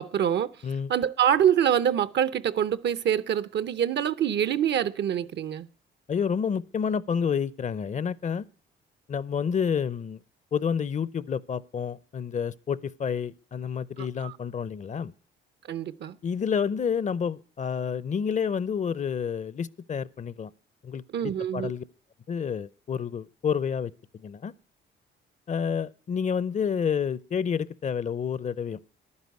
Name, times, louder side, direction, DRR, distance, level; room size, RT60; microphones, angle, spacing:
voice 1, 0.0-0.5 0.9-5.7 14.0-14.3 15.7-16.2 21.1-21.7, right 9 dB, 60° right, 0.7 m, -25 dB
voice 2, 6.1-8.4 9.1-10.2 10.5-15.1 16.2-20.5 20.8-21.8 22.3-23.9 24.2-24.5 25.5-28.8, left 7 dB, 40° left, 0.6 m, -29 dB
11.0 x 9.7 x 9.3 m
cardioid pair, 90°, 20 cm